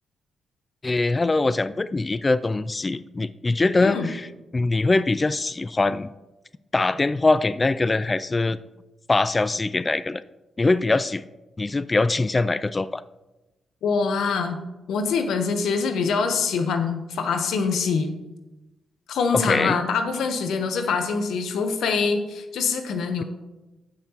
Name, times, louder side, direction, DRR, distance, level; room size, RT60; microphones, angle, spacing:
voice 1, 0.8-4.3 4.5-6.1 6.7-8.6 9.1-10.2 10.6-11.2 11.6-13.0 19.3-19.8, left 3 dB, 30° left, 15 dB, 0.3 m, -22 dB
voice 2, 13.8-14.6 14.9-18.1 19.1-23.2, left 5 dB, 80° left, 6 dB, 1.0 m, -24 dB
15.0 x 5.7 x 3.0 m, 1.0 s
supercardioid pair, 55°, 0 cm